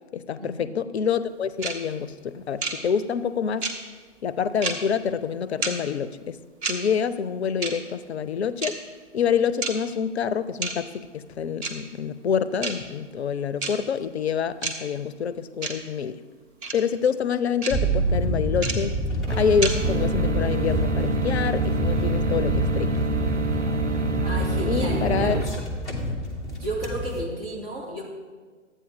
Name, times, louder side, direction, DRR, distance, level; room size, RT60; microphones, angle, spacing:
voice 1, 0.1-3.7 4.2-6.4 6.7-8.8 9.1-16.2 16.7-18.9 19.4-22.9 24.6-25.4, left 7 dB, 60° left, 15 dB, 0.5 m, -27 dB
sound 1, 1.6-1.7 2.6-2.7 3.6-3.7 4.6-4.7 5.6-5.7 6.6-6.7 7.6-7.7 8.6-8.7 9.6-9.7 10.6-10.7 11.6-11.7 12.6-12.7 13.6-13.7 14.6-14.7 15.6-15.7 16.6-16.7 17.6-17.7 18.6-18.7 19.6-19.7, right 3 dB, 20° right, 0.8 m, -28 dB
sound 2, 17.7-27.2, right 1 dB, ahead, 0.4 m, -27 dB
sound 3, 19.3-25.4, right 2 dB, 75° right, 0.9 m, -27 dB
voice 2, 24.2-25.4 26.4-28.0, equal, 50° right, -2 dB, 2.4 m, -32 dB
12.0 x 8.5 x 3.5 m, 1.5 s
figure-of-eight pair, 120°, 37 cm